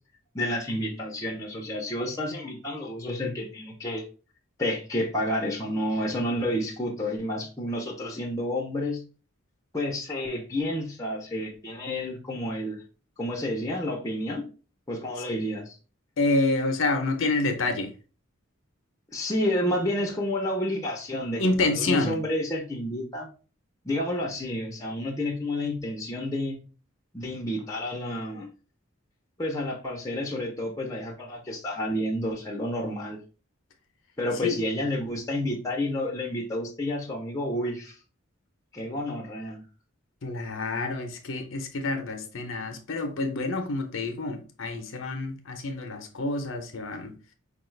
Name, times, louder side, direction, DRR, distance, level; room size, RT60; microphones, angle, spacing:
voice 1, 0.3-4.0 4.6-9.0 9.7-12.8 13.2-14.4 14.9-15.8 19.1-21.4 21.8-23.3 23.8-26.6 27.1-28.5 29.4-33.2 34.2-38.0 38.7-39.6, left 1 dB, 15° left, 0.6 m, -30 dB
voice 2, 16.2-17.9 21.4-22.2 34.3-34.6 40.2-47.1, left 2 dB, 70° left, 0.6 m, -28 dB
4.7 x 2.3 x 3.2 m
head